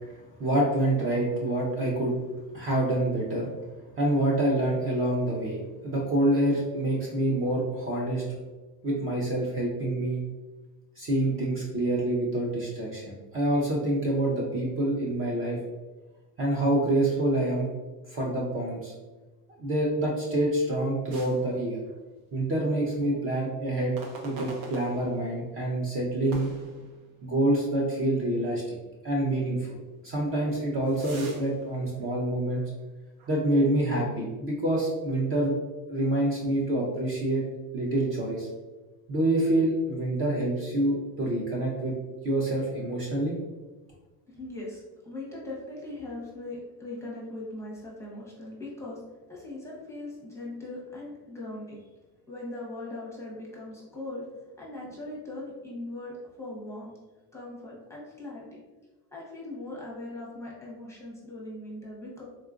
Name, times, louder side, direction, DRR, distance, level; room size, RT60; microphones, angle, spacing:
voice 1, 0.2-2.2 2.5-3.5 4.0-8.2 8.8-10.2 11.0-15.6 16.4-17.7 18.1-18.9 19.6-21.8 22.3-24.0 24.2-26.5 27.2-28.7 29.0-32.6 33.3-35.5 35.9-37.4 37.7-38.5 39.1-41.9 42.2-43.4, right 1 dB, 30° right, -3 dB, 0.5 m, -27 dB
sound 1, 21.1-22.3 22.6-22.8 24.0-25.5 26.3-27.5 27.9-28.0 28.7-28.8 30.1-32.8 33.2-33.4, right 2 dB, 90° right, 0.8 m, -45 dB
voice 2, 44.3-49.0 49.3-51.8 52.3-56.9 57.3-58.5 59.1-62.2, left 2 dB, 5° left, -5 dB, 0.7 m, -40 dB
3.7 x 2.3 x 2.4 m, 1.2 s
cardioid pair, 135°, 42 cm